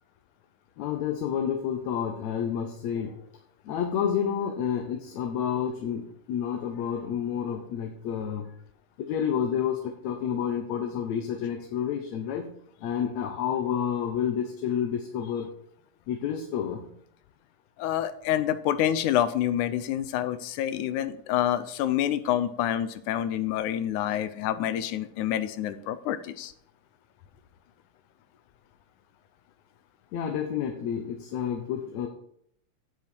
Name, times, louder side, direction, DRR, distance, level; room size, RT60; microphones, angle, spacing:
voice 1, 0.8-3.2 3.7-8.5 9.0-12.5 12.8-15.5 16.1-16.9 30.1-32.1, left 8 dB, 75° left, 4 dB, 2.1 m, -29 dB
voice 2, 17.8-26.5, left 11 dB, 90° left, 13 dB, 2.2 m, -27 dB
8.9 x 7.7 x 4.4 m, 0.67 s
omnidirectional pair, 3.4 m